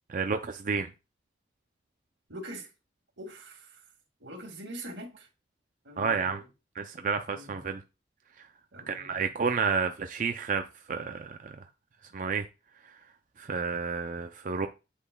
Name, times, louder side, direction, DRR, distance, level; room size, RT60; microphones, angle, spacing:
voice 1, 0.1-0.9 6.0-6.4 6.8-7.8 8.9-10.6 10.9-11.5 12.1-12.4 13.4-14.7, right 5 dB, 45° right, 0.4 m, -30 dB
voice 2, 2.3-2.7 3.2-3.8 4.2-5.3 5.8-6.5 7.3-7.7 8.7-9.3, right 1 dB, 90° right, 2.1 m, -43 dB
8.2 x 5.4 x 2.3 m
head